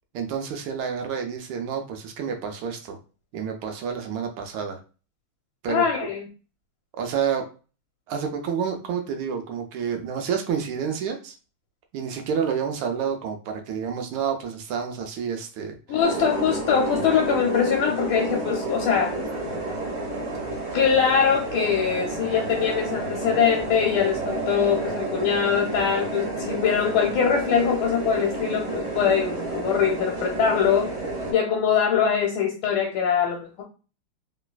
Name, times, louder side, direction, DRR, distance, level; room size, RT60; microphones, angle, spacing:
voice 1, 0.1-3.0 3.3-4.8 5.6-6.1 6.9-7.4 8.1-11.3 11.9-16.0, right 7 dB, 75° right, 4 dB, 1.4 m, -29 dB
voice 2, 5.7-6.3 15.9-19.2 20.2-20.3 20.7-30.9 31.3-33.6, left 7 dB, 75° left, 1 dB, 1.3 m, -23 dB
sound 1, 16.0-31.3, right 2 dB, 35° right, 1.3 m, -30 dB
3.2 x 3.0 x 2.2 m, 0.35 s
omnidirectional pair, 2.4 m